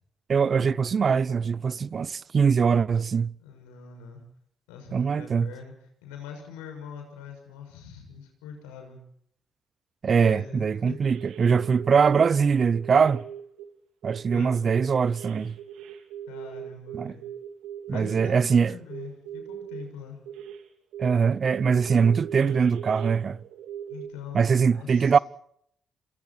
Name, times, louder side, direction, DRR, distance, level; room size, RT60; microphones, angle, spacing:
voice 1, 0.3-3.3 4.9-5.5 10.0-13.2 14.0-15.5 16.9-17.1 17.9-18.7 21.0-23.4 24.3-25.2, right 6 dB, 50° right, 0.8 m, -22 dB
voice 2, 3.4-4.2 4.7-5.7 6.0-9.0 10.2-11.0 14.3-14.6 16.3-17.2 17.9-20.2 23.9-25.2, left 6 dB, 90° left, 6.9 m, -43 dB
sound 1, 10.4-10.6 10.8-12.2 12.7-13.7 14.0-18.3 18.9-19.9 20.3-20.6 20.9-24.1, right 9 dB, 80° right, 2.9 m, -40 dB
28.5 x 27.0 x 4.5 m
hypercardioid pair, 50°, 0 cm